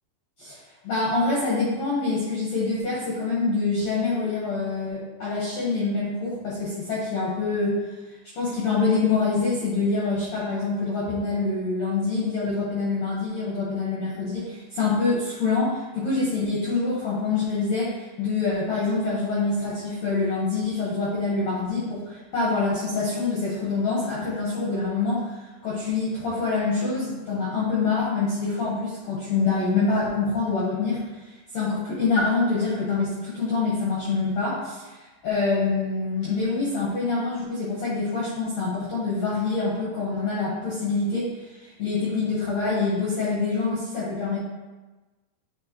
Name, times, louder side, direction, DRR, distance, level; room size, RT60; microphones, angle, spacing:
voice 1, 0.4-7.8 8.4-31.2 31.5-44.4, left 3 dB, 65° left, -7 dB, 1.8 m, -26 dB
8.7 x 4.5 x 2.9 m, 1.2 s
omnidirectional pair, 4.6 m